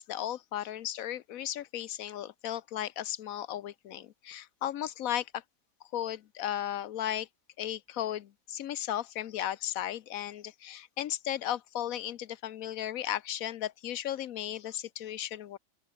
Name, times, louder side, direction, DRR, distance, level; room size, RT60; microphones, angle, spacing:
voice 1, 0.0-5.4 5.9-7.3 7.6-15.6, left 11 dB, 65° left, 1.1 m, -35 dB
open air
omnidirectional pair, 1.7 m